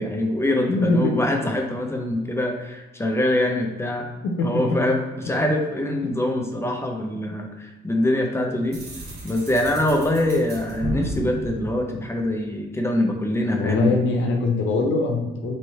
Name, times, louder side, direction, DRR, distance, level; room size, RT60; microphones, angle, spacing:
voice 1, 0.0-4.0 4.4-5.0 5.2-8.8 9.2-14.0, left 1 dB, 15° left, 2 dB, 0.7 m, -24 dB
voice 2, 0.7-1.2 4.2-4.8 6.3-6.5 7.1-7.3 13.5-15.6, left 3 dB, 75° left, 2 dB, 0.7 m, -23 dB
sound 1, 8.7-12.6, right 1 dB, 55° right, 1.2 m, -33 dB
3.1 x 3.0 x 4.3 m, 1.1 s
cardioid pair, 90°, 20 cm